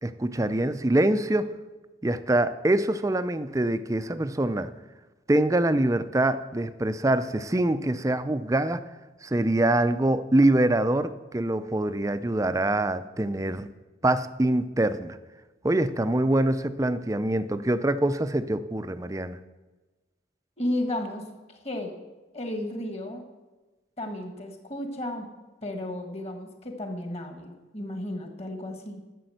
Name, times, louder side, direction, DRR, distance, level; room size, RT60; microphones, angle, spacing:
voice 1, 0.0-1.5 2.0-4.7 5.3-8.8 9.2-13.7 14.0-15.2 15.6-19.4, right 1 dB, 15° right, 12 dB, 0.5 m, -24 dB
voice 2, 20.6-21.9 22.3-23.2 24.0-25.3 25.6-29.0, left 1 dB, 35° left, 5 dB, 1.6 m, -33 dB
11.5 x 7.0 x 7.8 m, 1.2 s
head